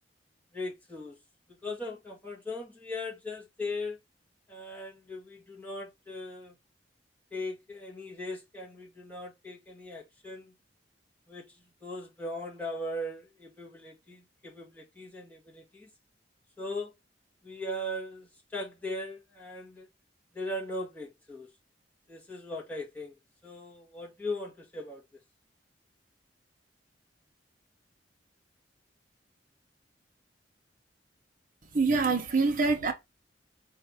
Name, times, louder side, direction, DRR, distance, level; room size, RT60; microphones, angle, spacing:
voice 1, 0.5-1.2 1.5-4.0 4.5-6.6 7.3-10.5 11.3-15.9 16.6-16.9 17.4-19.9 20.3-21.5 22.1-23.1 23.4-25.0, left 1 dB, 10° left, 1.6 m, -39 dB
voice 2, 31.7-32.9, right 4 dB, 50° right, 0.9 m, -25 dB
4.4 x 2.7 x 3.5 m
head